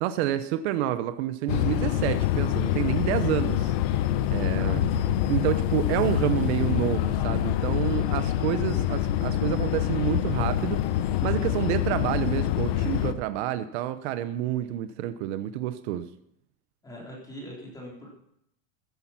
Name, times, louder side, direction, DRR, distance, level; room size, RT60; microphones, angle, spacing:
voice 1, 0.0-3.7 4.3-4.9 5.3-10.8 11.2-16.1, right 12 dB, 55° right, 11 dB, 0.9 m, -28 dB
sound 1, 1.5-13.1, left 11 dB, 50° left, 0.9 m, -26 dB
voice 2, 4.6-5.0 16.8-18.1, equal, 10° left, -3 dB, 3.7 m, -42 dB
15.0 x 10.5 x 5.8 m, 0.75 s
supercardioid pair, 180°, 40 cm